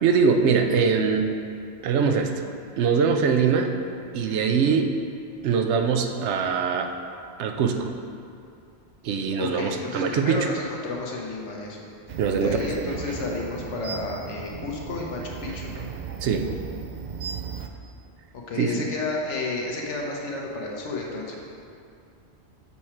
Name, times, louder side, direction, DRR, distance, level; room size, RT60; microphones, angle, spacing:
voice 1, 0.0-1.3 1.8-2.3 2.8-3.7 4.1-5.0 5.4-6.9 7.4-7.9 9.0-10.5 12.2-13.0 16.2-16.5 18.6-18.8, right 6 dB, 75° right, 5 dB, 0.9 m, -22 dB
voice 2, 9.4-11.8 12.4-15.9 18.3-21.4, left 3 dB, 90° left, -1 dB, 1.3 m, -31 dB
sound 1, 12.1-17.7, right 6 dB, 60° right, 0.5 m, -36 dB
7.0 x 4.9 x 4.3 m, 2.5 s
omnidirectional pair, 1.2 m